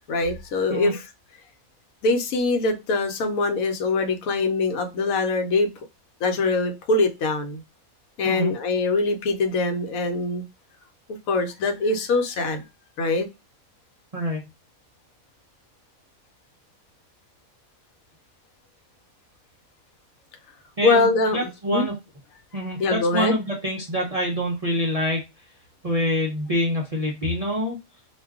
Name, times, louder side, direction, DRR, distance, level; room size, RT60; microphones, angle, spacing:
voice 1, 0.1-1.0 2.0-5.7 6.2-7.6 8.2-10.4 11.1-12.6 13.0-13.3 20.8-21.9 22.8-23.3, left 3 dB, 80° left, 6 dB, 1.1 m, -23 dB
voice 2, 20.8-21.9 22.5-25.2 25.8-27.8, equal, 50° right, -2 dB, 0.4 m, -26 dB
2.5 x 2.3 x 3.4 m, 0.25 s
omnidirectional pair, 1.4 m